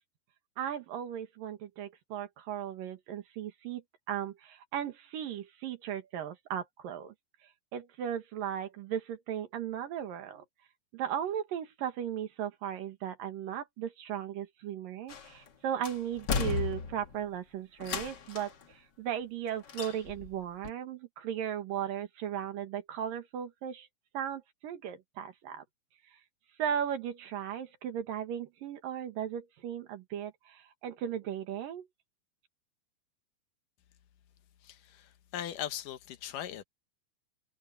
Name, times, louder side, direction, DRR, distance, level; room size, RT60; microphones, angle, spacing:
voice 1, 0.6-7.1 7.7-10.4 10.9-18.5 19.0-23.9 24.1-25.6 26.6-31.9, right 9 dB, 80° right, 3.4 m, -36 dB
sound 1, 15.1-15.5 15.8-17.2 17.8-18.6 19.7-20.3 20.6-20.7, left 5 dB, 50° left, 1.3 m, -34 dB
voice 2, 34.6-36.6, left 11 dB, 75° left, 2.5 m, -39 dB
omnidirectional pair, 4.0 m